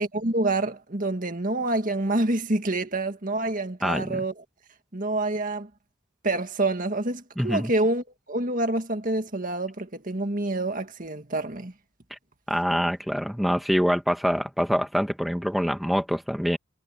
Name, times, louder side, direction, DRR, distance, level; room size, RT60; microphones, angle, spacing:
voice 1, 0.0-4.3 4.9-5.7 6.2-11.7, right 2 dB, 40° right, 2.0 m, -27 dB
voice 2, 3.8-4.2 7.4-7.7 12.1-12.2 12.5-16.6, equal, ahead, 1.3 m, -25 dB
head